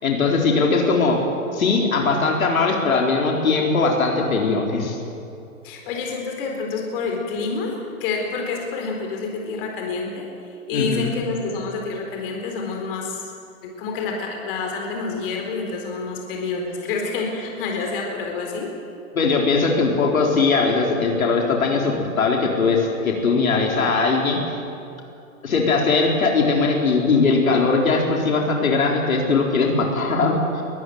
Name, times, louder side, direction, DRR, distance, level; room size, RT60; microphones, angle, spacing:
voice 1, 0.0-1.2 1.5-5.0 10.7-11.1 19.1-24.5 25.4-30.6, left 4 dB, 75° left, 0 dB, 4.5 m, -20 dB
voice 2, 5.6-7.7 8.0-10.3 10.7-13.2 13.6-18.7, left 4 dB, 40° left, 1 dB, 4.2 m, -28 dB
22.0 x 15.0 x 9.5 m, 2.6 s
hypercardioid pair, 140°, 42 cm